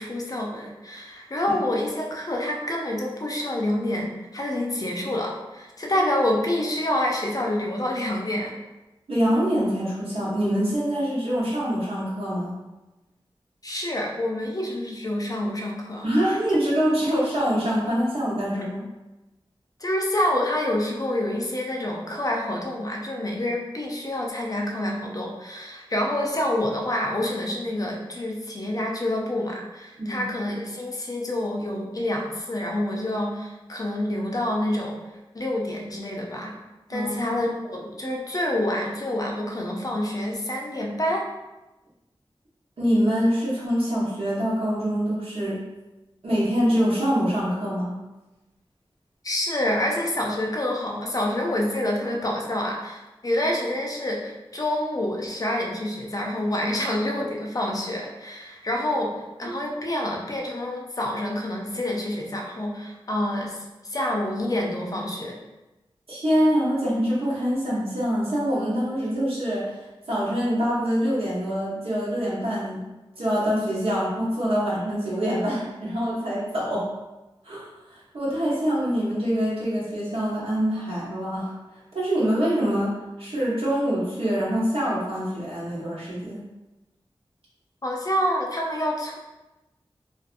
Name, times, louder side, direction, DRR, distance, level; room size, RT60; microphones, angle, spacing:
voice 1, 0.0-8.5 13.6-16.1 19.8-35.0 35.3-36.5 36.9-41.2 49.2-59.1 59.4-65.4 87.8-89.2, left 1 dB, 40° left, 0 dB, 0.5 m, -27 dB
voice 2, 9.1-12.5 16.0-18.8 30.0-30.2 36.9-37.2 42.8-45.6 46.2-48.0 59.4-59.5 66.1-69.8 70.1-72.9 73.2-76.9 77.4-81.5 81.9-86.5, equal, 80° right, -7 dB, 1.0 m, -25 dB
2.6 x 2.4 x 2.5 m, 1.0 s
wide cardioid pair, 70°, 10 cm